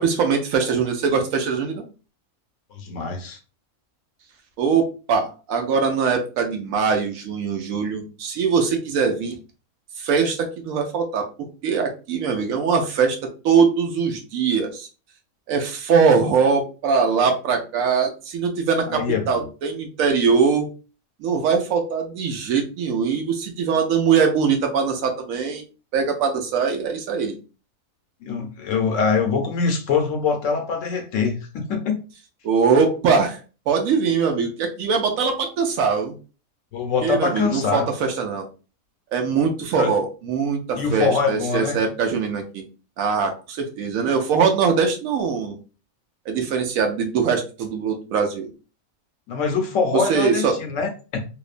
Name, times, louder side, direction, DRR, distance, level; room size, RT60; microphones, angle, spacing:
voice 1, 0.0-1.8 4.6-9.4 10.0-11.3 11.6-13.2 13.4-14.9 15.5-20.7 21.2-25.6 25.9-27.4 32.4-33.4 33.7-36.2 37.0-38.5 39.1-42.6 43.0-45.6 46.3-48.5 49.9-50.6, right 5 dB, 75° right, 4 dB, 1.0 m, -22 dB
voice 2, 2.7-3.4 18.9-19.5 28.2-32.0 36.7-37.9 39.8-39.9 40.7-41.8 49.3-51.2, left 5 dB, 70° left, 4 dB, 0.9 m, -23 dB
2.9 x 2.1 x 2.4 m, 0.34 s
omnidirectional pair, 1.5 m